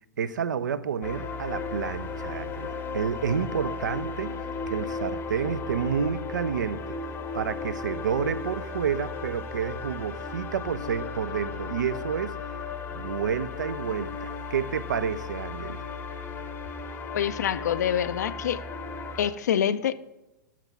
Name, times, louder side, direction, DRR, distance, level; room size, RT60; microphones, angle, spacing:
voice 1, 0.2-4.3 4.7-7.0 7.3-12.4 12.9-15.8, right 7 dB, 70° right, 0.4 m, -30 dB
sound 1, 1.0-19.3, left 4 dB, 20° left, 0.7 m, -35 dB
voice 2, 17.1-18.6 19.2-19.9, left 9 dB, 60° left, 0.4 m, -26 dB
6.0 x 5.8 x 5.7 m
figure-of-eight pair, 105°, 10 cm